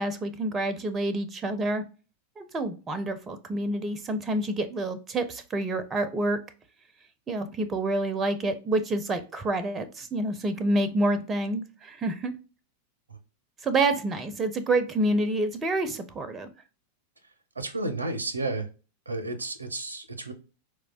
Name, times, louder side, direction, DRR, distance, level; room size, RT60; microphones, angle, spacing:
voice 1, 0.0-1.8 2.4-6.4 7.3-12.3 13.6-16.5, right 2 dB, 20° right, 11 dB, 0.4 m, -28 dB
voice 2, 17.6-18.7 19.1-20.3, right 2 dB, 80° right, 10 dB, 0.5 m, -32 dB
4.4 x 2.1 x 2.4 m, 0.33 s
figure-of-eight pair, 90°, 0 cm